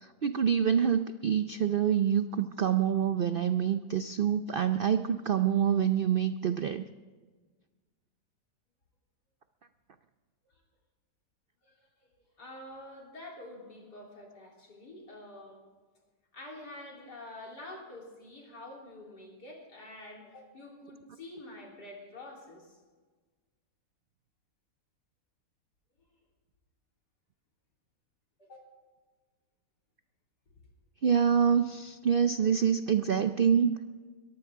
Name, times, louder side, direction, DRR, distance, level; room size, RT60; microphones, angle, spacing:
voice 1, 0.0-6.8 31.0-33.8, right 8 dB, 80° right, 10 dB, 0.4 m, -26 dB
voice 2, 11.6-12.1 12.4-15.6 16.3-22.8 28.4-28.7 30.5-30.6, left 1 dB, 85° left, -1 dB, 4.2 m, -47 dB
22.0 x 15.0 x 3.7 m, 1.4 s
omnidirectional pair, 1.7 m